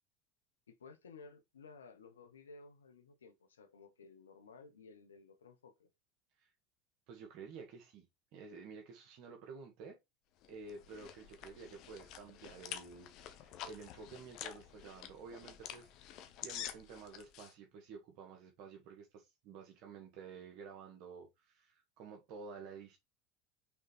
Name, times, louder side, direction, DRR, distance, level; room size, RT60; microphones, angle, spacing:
voice 1, 0.7-5.9, left 4 dB, 85° left, 1.1 m, -56 dB
voice 2, 7.1-8.1 8.3-10.0 10.5-16.1 16.4-23.0, right 5 dB, 60° right, 1.9 m, -51 dB
sound 1, 10.4-17.5, left 10 dB, 55° left, 1.1 m, -49 dB
5.9 x 4.0 x 4.2 m
hypercardioid pair, 75°, 0 cm